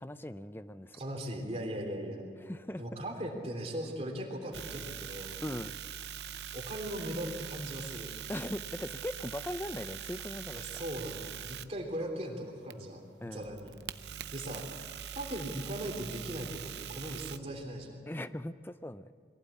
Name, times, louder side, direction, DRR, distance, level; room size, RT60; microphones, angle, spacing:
voice 1, 0.0-1.0 2.4-2.8 5.4-5.7 8.3-10.8 13.2-13.5 18.1-19.1, left 1 dB, 10° left, 12 dB, 0.5 m, -39 dB
voice 2, 1.0-2.2 2.8-5.4 6.5-8.1 10.5-13.7 14.3-14.6 15.1-18.0, right 1 dB, 35° right, 1 dB, 3.3 m, -39 dB
sound 1, 4.5-11.6 12.7-17.4, right 9 dB, 65° right, 0.7 m, -43 dB
23.0 x 16.0 x 8.4 m, 2.3 s
head